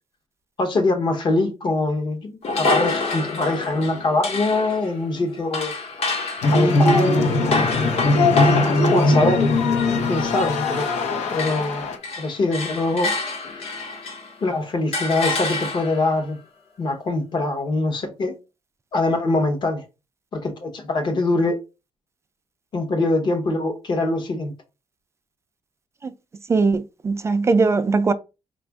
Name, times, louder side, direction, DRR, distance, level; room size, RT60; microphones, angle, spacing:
voice 1, 0.6-5.7 6.5-7.8 8.9-9.4 9.9-10.9 11.3-11.9 12.2-13.1 13.5-13.6 14.4-16.4 16.8-18.3 18.9-19.8 20.3-21.6 22.7-24.5, left 2 dB, 40° left, 0.9 m, -23 dB
sound 1, 2.4-11.1 11.3-14.4 14.9-16.1, left 3 dB, 65° left, 1.2 m, -28 dB
sound 2, 6.4-12.0, left 2 dB, 80° left, 0.9 m, -20 dB
voice 2, 26.5-28.1, right 4 dB, 25° right, 0.3 m, -20 dB
5.0 x 2.5 x 3.4 m
cardioid pair, 150°, 12 cm